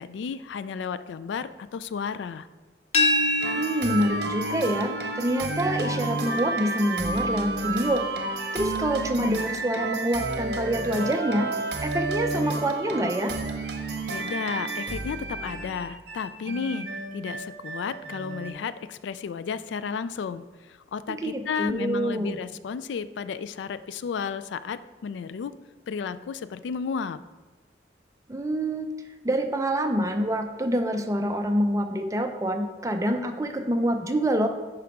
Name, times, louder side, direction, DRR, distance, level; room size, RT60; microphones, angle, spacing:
voice 1, 0.0-2.5 14.1-25.5 25.9-27.2, left 6 dB, 85° left, 14 dB, 0.3 m, -33 dB
sound 1, 2.9-8.7, left 2 dB, 35° left, 0.7 m, -30 dB
sound 2, 3.4-18.5, right 3 dB, 60° right, 0.8 m, -31 dB
voice 2, 3.5-8.1 8.5-11.5 11.8-13.4 21.1-22.4 28.3-28.9 29.2-34.5, right 1 dB, 20° right, 6 dB, 0.5 m, -26 dB
10.5 x 4.8 x 3.5 m, 1.3 s
head